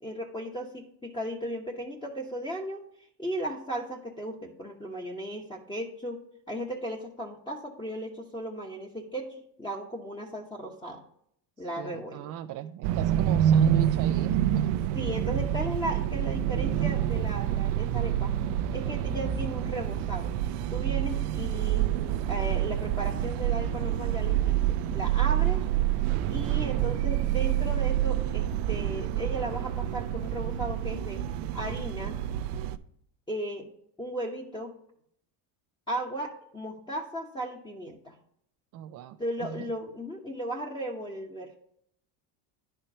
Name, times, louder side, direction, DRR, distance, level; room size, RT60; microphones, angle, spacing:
voice 1, 0.0-2.8 3.2-11.0 11.6-12.3 14.9-18.3 18.7-20.3 20.7-21.9 22.2-25.6 26.3-31.2 31.5-32.2 33.3-33.7 34.0-34.7 35.9-38.2 39.2-41.5, right 1 dB, 10° left, -2 dB, 1.1 m, -36 dB
voice 2, 11.8-14.7 25.3-25.6 38.7-39.6, right 12 dB, 45° right, 6 dB, 0.4 m, -37 dB
sound 1, 12.8-32.8, right 11 dB, 85° right, 0.7 m, -27 dB
sound 2, 21.7-29.1, right 8 dB, 65° right, 1.1 m, -39 dB
10.0 x 4.5 x 5.4 m, 0.68 s
supercardioid pair, 105°, 47 cm